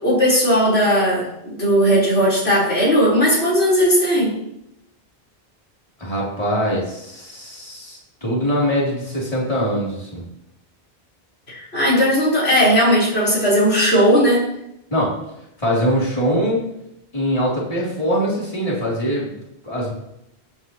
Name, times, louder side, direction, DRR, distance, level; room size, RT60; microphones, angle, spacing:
voice 1, 0.0-4.4 11.5-14.4, equal, 85° left, -5 dB, 4.8 m, -17 dB
voice 2, 6.0-10.2 14.9-15.2 15.6-16.6 17.1-19.3 19.6-19.9, equal, 35° left, -6 dB, 3.7 m, -22 dB
17.0 x 8.9 x 3.2 m, 0.80 s
omnidirectional pair, 1.0 m